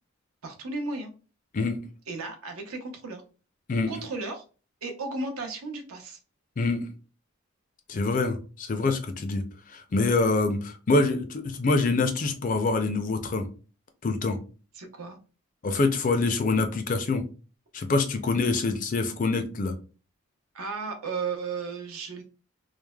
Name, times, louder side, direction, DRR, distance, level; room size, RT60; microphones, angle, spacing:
voice 1, 0.4-1.1 2.1-3.2 3.9-4.4 4.8-6.2 14.7-15.2 20.5-22.2, right 3 dB, 85° right, 3 dB, 0.7 m, -34 dB
voice 2, 7.9-9.4 9.7-13.4 14.0-14.4 15.6-17.2 17.7-19.7, left 3 dB, 35° left, 7 dB, 0.4 m, -25 dB
3.2 x 2.0 x 2.2 m, 0.35 s
head